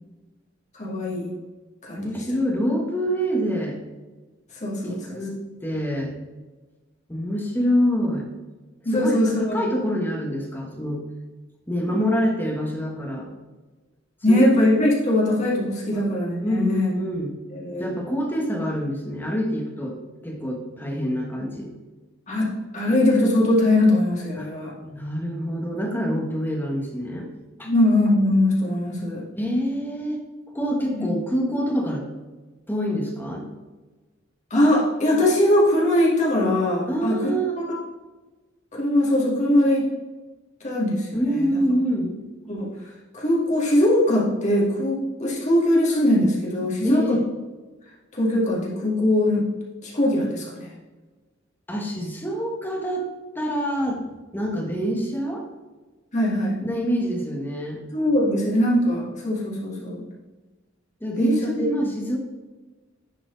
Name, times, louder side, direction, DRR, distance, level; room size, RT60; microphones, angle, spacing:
voice 1, 0.8-1.3 1.8-2.0 4.6-5.2 8.8-9.6 14.2-16.9 17.5-17.9 22.3-22.5 22.7-24.7 27.6-29.2 30.9-31.1 34.5-37.3 37.7-37.8 38.7-39.8 40.6-41.2 41.5-41.6 42.5-42.7 43.1-47.2 48.2-49.5 49.8-50.7 56.1-56.6 57.9-60.0 61.2-61.4 61.7-61.9, left 1 dB, 40° left, -5 dB, 2.3 m, -21 dB
voice 2, 2.0-3.8 4.8-6.1 7.1-8.3 8.9-11.0 11.7-13.3 14.3-14.4 15.9-16.0 16.4-17.3 17.8-20.0 20.2-21.7 24.4-24.5 24.8-27.3 27.6-27.7 29.3-30.2 30.5-32.1 32.7-33.4 36.9-37.6 41.1-42.2 46.8-47.2 51.7-53.1 53.3-54.0 54.3-55.4 56.6-57.8 61.0-62.2, equal, 10° left, -1 dB, 1.4 m, -26 dB
10.0 x 4.7 x 4.0 m, 1.2 s
head